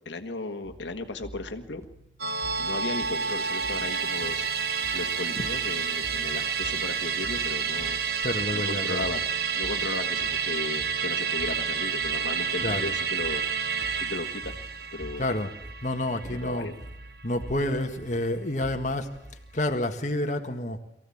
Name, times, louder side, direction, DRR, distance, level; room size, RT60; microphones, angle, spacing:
voice 1, 0.0-1.9 2.6-4.4 4.9-8.0 8.5-9.2 9.5-13.4 13.9-14.5 14.9-15.3 16.2-16.8, left 2 dB, 80° left, 6 dB, 1.6 m, -35 dB
sound 1, 0.6-19.7, right 1 dB, 15° right, 2.1 m, -47 dB
Musical instrument, 2.2-16.9 17.2-17.3, right 6 dB, 55° right, 1.3 m, -29 dB
voice 2, 8.2-9.1 12.6-12.9 15.2-15.5 15.8-16.7 17.2-19.1 19.5-20.8, left 1 dB, 40° left, 4 dB, 1.7 m, -29 dB
23.0 x 15.0 x 8.6 m, 0.84 s
head